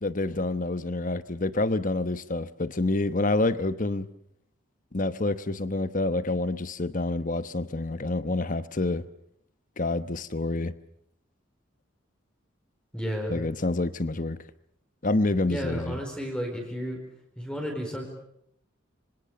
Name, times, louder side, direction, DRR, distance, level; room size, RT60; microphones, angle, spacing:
voice 1, 0.0-4.1 4.9-9.0 9.8-10.7 13.3-14.4 15.0-16.0, left 2 dB, 40° left, 13 dB, 1.1 m, -27 dB
voice 2, 12.9-13.4 15.5-17.0 17.4-18.1, equal, 5° left, 1 dB, 4.6 m, -32 dB
26.0 x 25.0 x 6.8 m, 0.73 s
head